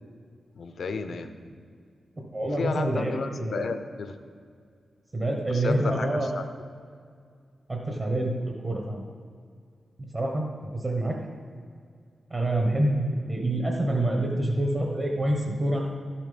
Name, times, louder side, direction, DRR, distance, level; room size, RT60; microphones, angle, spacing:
voice 1, 0.5-1.3 2.6-4.2 5.5-6.4, left 4 dB, 55° left, 8 dB, 0.7 m, -32 dB
voice 2, 2.3-3.7 5.1-6.3 7.7-9.0 10.1-10.5 10.7-11.2 12.3-15.9, right 1 dB, 30° right, 0 dB, 1.1 m, -27 dB
13.0 x 7.4 x 5.2 m, 2.2 s
wide cardioid pair, 180°, 0 cm